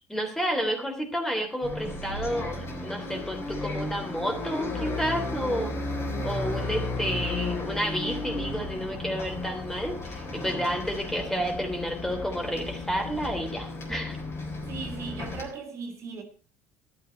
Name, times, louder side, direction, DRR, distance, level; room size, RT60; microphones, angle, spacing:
voice 1, 0.1-5.7 6.2-14.2, equal, 5° left, 3.0 m, -30 dB
Bus, 1.6-15.4, left 2 dB, 40° left, 3.7 m, -34 dB
voice 2, 14.7-16.2, right 4 dB, 50° right, 2.7 m, -38 dB
13.0 x 9.9 x 4.4 m
hypercardioid pair, 60°, 6 cm